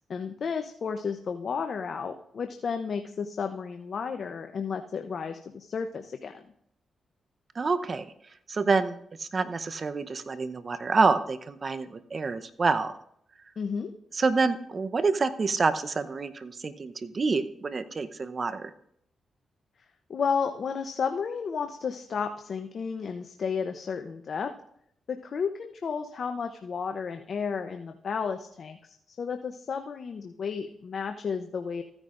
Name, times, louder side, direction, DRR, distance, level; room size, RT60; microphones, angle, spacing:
voice 1, 0.1-6.4 13.6-13.9 20.1-24.5 25.1-31.8, left 6 dB, 60° left, 6 dB, 0.8 m, -32 dB
voice 2, 7.5-8.1 8.5-12.9 14.1-18.7, right 4 dB, 45° right, 10 dB, 0.8 m, -27 dB
15.0 x 9.8 x 2.6 m, 0.70 s
supercardioid pair, 55°, 0 cm